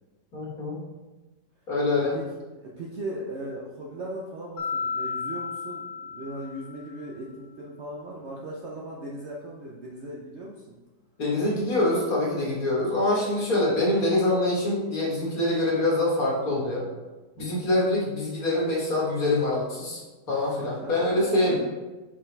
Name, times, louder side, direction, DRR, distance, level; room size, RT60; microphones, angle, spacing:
voice 1, 0.3-0.8 1.7-2.1 11.2-16.8 17.4-20.0 20.3-21.6, left 2 dB, 55° left, -4 dB, 2.0 m, -25 dB
voice 2, 2.6-10.8 20.3-21.0 21.5-21.6, right 1 dB, 55° right, -3 dB, 0.8 m, -38 dB
Mallet percussion, 4.6-6.9, left 5 dB, 90° left, 1.7 m, -33 dB
5.8 x 5.0 x 3.3 m, 1.2 s
omnidirectional pair, 1.8 m